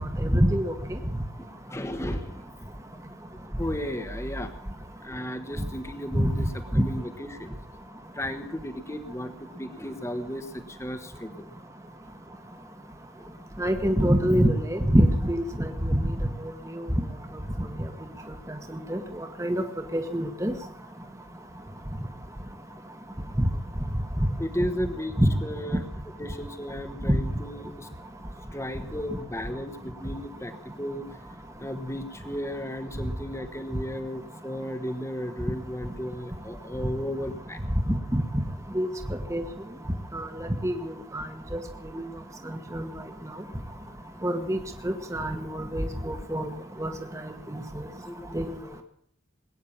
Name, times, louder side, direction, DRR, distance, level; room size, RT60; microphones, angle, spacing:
voice 1, 0.2-0.7 6.2-6.3 6.7-6.8 13.6-16.0 16.8-16.9 18.9-19.0 19.4-19.6 19.9-20.5 23.4-23.5 25.2-25.3 27.1-27.2 38.7-38.9 39.3-39.4 40.1-40.2 40.6-41.3 41.9-42.0 42.7-42.9 44.2-44.6 44.8-46.5 46.8-46.9 48.3-48.5, equal, 15° right, 5 dB, 1.3 m, -24 dB
voice 2, 1.7-2.4 3.6-4.5 5.0-6.5 6.7-7.5 8.1-9.3 9.6-11.5 13.2-13.3 24.4-25.1 25.4-25.8 26.2-27.9 28.5-31.0 31.6-37.6 42.4-42.5 48.1-48.3 48.6-48.8, equal, 15° left, 9 dB, 1.1 m, -34 dB
20.5 x 9.4 x 7.2 m, 0.67 s
head